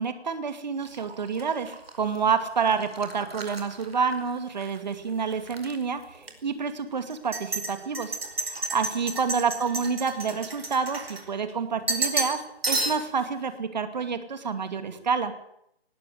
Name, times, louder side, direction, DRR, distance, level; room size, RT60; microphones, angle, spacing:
voice 1, 0.0-15.3, right 5 dB, 45° right, 9 dB, 2.6 m, -28 dB
sound 1, 0.8-4.8 5.1-5.8 6.2-6.3 7.1-11.5 11.9-12.4 12.6-13.2, right 2 dB, 65° right, 5.0 m, -32 dB
20.0 x 15.0 x 9.4 m, 0.77 s
figure-of-eight pair, 155°, 32 cm